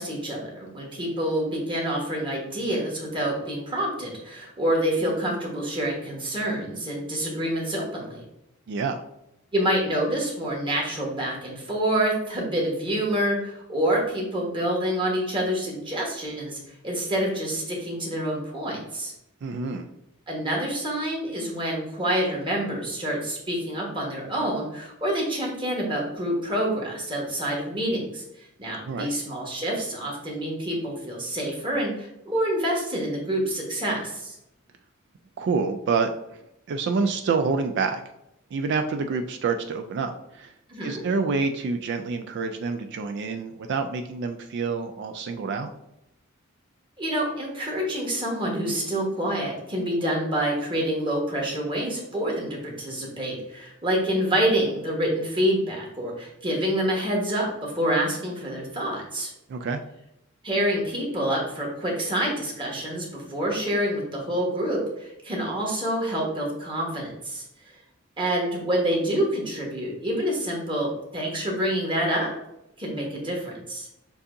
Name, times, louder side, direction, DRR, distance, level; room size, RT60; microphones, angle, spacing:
voice 1, 0.0-8.2 9.5-19.1 20.3-28.2 28.6-34.4 40.7-41.0 47.0-59.3 60.4-67.4 68.2-72.3 72.8-73.9, right 1 dB, 25° right, -2 dB, 1.3 m, -27 dB
voice 2, 8.7-9.0 19.4-19.9 28.9-29.1 35.4-36.1 36.7-38.0 38.5-40.5 40.8-45.7 59.5-59.8, right 4 dB, 55° right, 6 dB, 0.3 m, -27 dB
6.7 x 2.7 x 2.6 m, 0.83 s
head